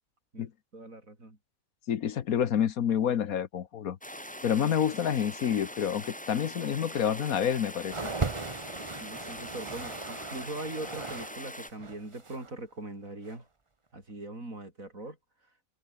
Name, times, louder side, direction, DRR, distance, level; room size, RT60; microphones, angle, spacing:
voice 1, 0.3-1.4 9.0-13.5 13.9-15.2, right 2 dB, 65° right, 6.4 m, -41 dB
voice 2, 1.9-4.0 4.4-8.1, left 9 dB, 70° left, 1.5 m, -28 dB
sound 1, 4.0-11.7, equal, 5° left, 2.4 m, -42 dB
sound 2, 7.9-11.4 11.6-12.5 13.2-13.4, right 3 dB, 25° right, 1.1 m, -37 dB
open air
omnidirectional pair, 1.5 m